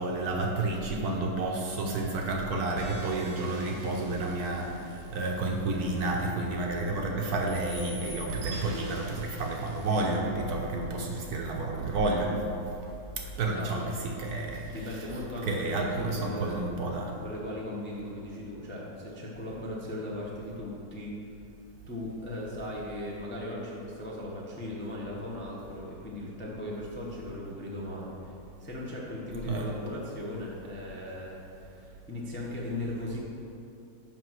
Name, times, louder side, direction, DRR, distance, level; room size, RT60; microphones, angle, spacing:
voice 1, 0.0-4.8 5.1-12.3 13.2-14.7 15.5-17.1 29.5-29.7, right 2 dB, 65° right, 1 dB, 1.1 m, -30 dB
sound 1, 2.8-7.0 7.5-10.2, right 2 dB, 80° right, 1.7 m, -44 dB
voice 2, 14.6-16.7 17.2-21.2 21.9-28.3 28.6-33.2, left 1 dB, 15° left, -5 dB, 0.4 m, -38 dB
5.9 x 5.1 x 6.1 m, 2.8 s
omnidirectional pair, 2.0 m